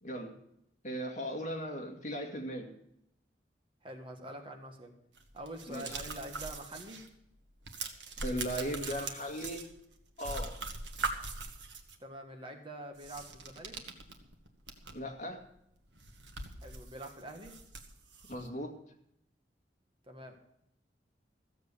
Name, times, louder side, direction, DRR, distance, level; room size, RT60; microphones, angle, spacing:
voice 1, 0.0-0.3 0.8-2.7 5.7-6.0 8.2-9.6 10.2-10.6 14.9-15.4 18.3-18.8, equal, 45° left, 2 dB, 2.1 m, -37 dB
voice 2, 3.8-4.9 5.3-7.0 12.0-13.8 16.6-17.6 20.1-20.4, right 1 dB, 30° right, 3 dB, 1.7 m, -45 dB
sound 1, 5.2-7.1 7.4-9.9 10.2-12.0 12.9-15.1 15.4-15.5 15.9-18.5, right 3 dB, 85° right, 1.6 m, -42 dB
15.0 x 7.8 x 6.9 m, 0.76 s
head